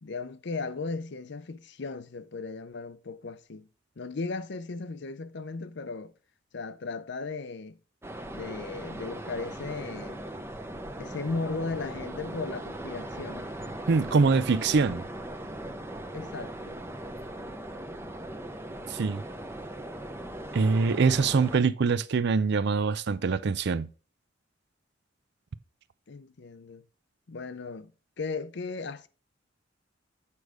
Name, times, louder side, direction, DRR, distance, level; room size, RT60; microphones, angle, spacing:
voice 1, 0.0-3.7 4.0-6.1 6.5-7.8 8.3-10.2 11.0-13.5 16.1-16.8 21.1-21.3 26.1-26.8 27.3-27.9 28.2-29.1, left 4 dB, 65° left, 0.6 m, -36 dB
sound 1, 8.0-21.6, right 1 dB, 15° right, 0.7 m, -39 dB
voice 2, 13.9-15.0 18.9-19.2 20.5-23.9, right 4 dB, 60° right, 0.5 m, -24 dB
8.4 x 4.7 x 5.0 m
head